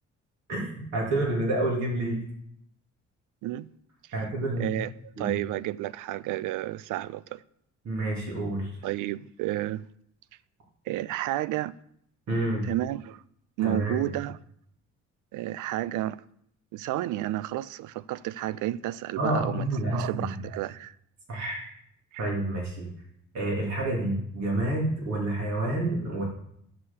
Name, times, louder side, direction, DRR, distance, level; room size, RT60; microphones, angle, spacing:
voice 1, 0.5-2.3 4.1-4.8 5.2-5.4 7.8-8.7 12.3-12.7 13.6-14.0 19.2-20.4 21.3-21.6 22.2-22.9 23.3-26.2, right 1 dB, 60° right, 3.3 m, -29 dB
voice 2, 4.6-4.9 5.2-7.4 8.8-9.8 10.9-11.7 12.6-13.2 13.6-14.4 15.3-16.2 16.7-19.6 19.9-21.0 22.1-22.2, right 15 dB, 85° right, 0.5 m, -31 dB
11.0 x 4.8 x 7.2 m
cardioid pair, 90°, 30 cm